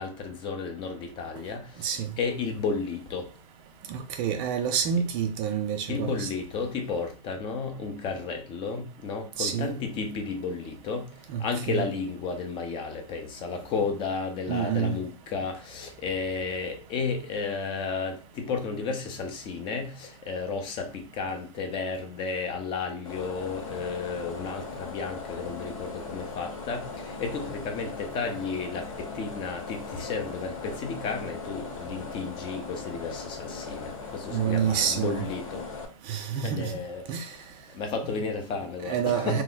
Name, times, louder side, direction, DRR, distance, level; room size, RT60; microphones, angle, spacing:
voice 1, 0.0-3.3 5.9-11.1 11.4-35.6 36.4-37.1 37.7-39.4, left 4 dB, 30° left, 0.6 m, -33 dB
voice 2, 3.9-6.3 9.4-9.7 11.3-11.9 14.5-15.0 34.3-35.2 36.1-36.7 37.1-37.3 38.9-39.4, right 8 dB, 35° right, 0.4 m, -28 dB
sound 1, 23.0-35.8, left 4 dB, 70° left, 1.0 m, -39 dB
2.9 x 2.2 x 3.8 m
hypercardioid pair, 135°, 18 cm